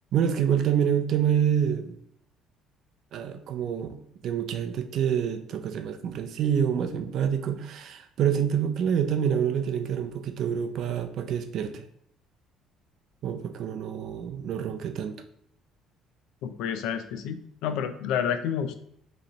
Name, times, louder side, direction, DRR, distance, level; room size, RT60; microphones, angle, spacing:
voice 1, 0.1-2.0 3.1-4.0 4.2-11.8 13.2-15.2, right 8 dB, 50° right, 8 dB, 0.4 m, -27 dB
voice 2, 16.4-18.7, left 8 dB, 80° left, 10 dB, 0.4 m, -29 dB
5.1 x 3.2 x 2.9 m, 0.72 s
cardioid pair, 160°, 0 cm